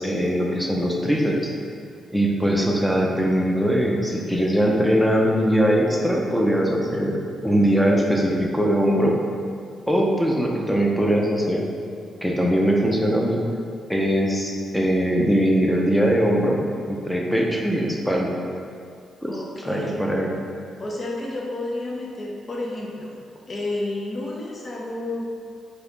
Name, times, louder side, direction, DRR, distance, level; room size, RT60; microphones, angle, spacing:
voice 1, 0.0-1.5 2.1-9.2 9.9-11.6 12.2-13.4 13.9-16.6 16.9-18.3 19.2-19.4 19.6-20.3, equal, 5° left, -1 dB, 0.6 m, -21 dB
voice 2, 19.3-20.0 20.8-23.1 23.5-25.3, left 2 dB, 40° left, -2 dB, 0.6 m, -30 dB
4.0 x 2.8 x 4.0 m, 2.3 s
cardioid pair, 80°, 0 cm